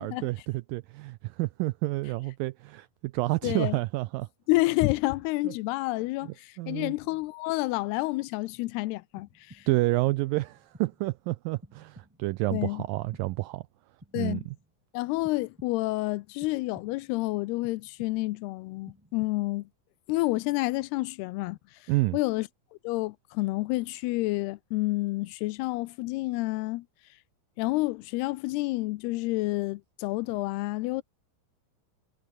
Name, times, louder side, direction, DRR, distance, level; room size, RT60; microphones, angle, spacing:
voice 1, 0.0-4.3 5.4-5.5 6.6-6.9 9.7-13.6 14.2-14.6 21.9-22.2, right 20 dB, 90° right, 1.9 m, -29 dB
voice 2, 3.4-3.8 4.5-9.7 12.5-12.8 14.1-14.4 14.9-19.7 20.1-22.5 22.8-26.9 27.6-31.0, left 20 dB, 90° left, 2.7 m, -29 dB
sound 1, 9.2-10.0 10.4-11.1 11.6-12.4 12.8-13.6 14.0-14.8 15.2-16.0 16.4-17.2 17.6-18.5 18.9-19.7, right 1 dB, 5° right, 3.3 m, -54 dB
omnidirectional pair, 4.6 m